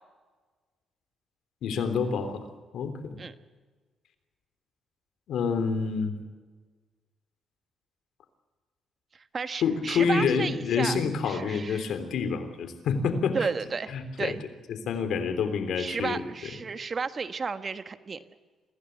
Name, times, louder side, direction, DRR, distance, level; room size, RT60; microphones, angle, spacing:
voice 1, 1.6-2.4 2.7-3.2 5.3-6.1 9.6-13.5 13.9-14.3 14.7-16.2, left 5 dB, 75° left, 8 dB, 3.3 m, -27 dB
voice 2, 9.3-11.0 11.2-11.9 13.3-14.4 15.8-18.2, right 5 dB, 40° right, 10 dB, 1.3 m, -33 dB
25.0 x 16.0 x 8.3 m, 1.4 s
cardioid pair, 90°, 0 cm